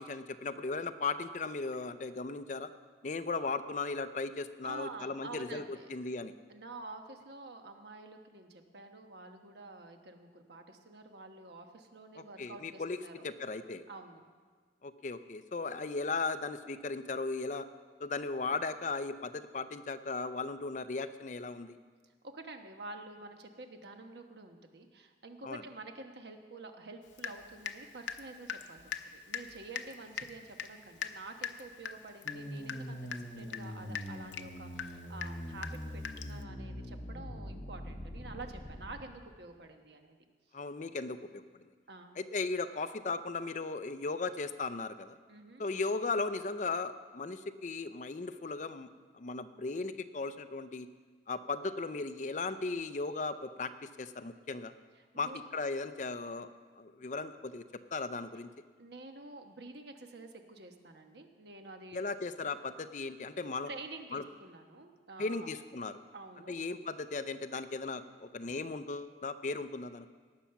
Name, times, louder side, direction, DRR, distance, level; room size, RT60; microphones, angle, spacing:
voice 1, 0.0-2.7 3.0-5.6 5.9-6.3 12.2-13.0 13.2-13.8 14.8-17.6 18.0-21.8 25.4-25.6 40.5-41.4 42.2-45.2 45.6-48.9 49.1-50.9 51.3-54.7 55.2-56.5 56.8-57.6 57.9-58.5 61.9-63.7 64.1-64.2 65.2-65.9 66.5-70.1, left 3 dB, 45° left, 11 dB, 0.5 m, -37 dB
voice 2, 4.6-5.9 6.5-13.2 13.9-14.2 22.0-40.2 41.9-42.2 45.3-45.7 55.0-55.4 58.8-62.1 63.7-65.5 66.1-66.6, right 2 dB, 65° right, 5 dB, 1.2 m, -49 dB
Water tap faucet / Drip, 27.2-27.8 28.1-36.4, left 7 dB, 90° left, 0.6 m, -41 dB
sound 1, 32.2-39.0, equal, 25° left, 1.3 m, -43 dB
18.5 x 7.1 x 5.8 m, 1.5 s
head